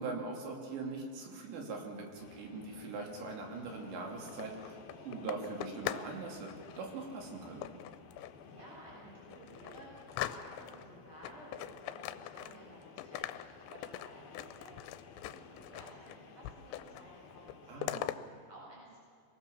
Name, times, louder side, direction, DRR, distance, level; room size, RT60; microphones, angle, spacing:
voice 1, 0.0-7.8 17.7-18.1, right 3 dB, 75° right, 1 dB, 5.1 m, -42 dB
sound 1, 2.2-17.8, left 5 dB, 60° left, 3.3 m, -55 dB
sound 2, 4.2-6.1 6.4-6.8 7.6-8.4 8.9-9.0 9.3-10.9 11.2-12.7 13.0-16.2 16.4-17.1 17.3-18.2, left 13 dB, 85° left, 3.1 m, -42 dB
voice 2, 8.4-17.7 18.1-19.0, right 1 dB, 30° right, -5 dB, 7.8 m, -55 dB
24.5 x 19.0 x 7.2 m, 2.3 s
omnidirectional pair, 5.1 m